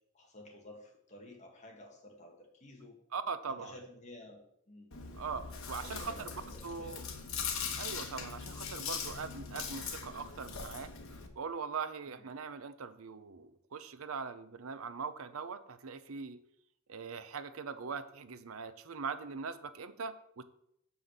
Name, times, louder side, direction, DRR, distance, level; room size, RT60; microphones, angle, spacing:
voice 1, 0.1-3.0 3.5-4.9 5.8-7.2 12.1-12.2, left 1 dB, 35° left, 1 dB, 1.8 m, -53 dB
voice 2, 3.1-3.7 5.2-6.3 6.6-7.0 7.8-10.9 11.4-16.4 16.9-20.4, right 5 dB, 80° right, 12 dB, 0.6 m, -41 dB
Chewing mastication, 4.9-11.3, left 6 dB, 75° left, 1.3 m, -41 dB
7.6 x 5.6 x 6.6 m, 0.75 s
head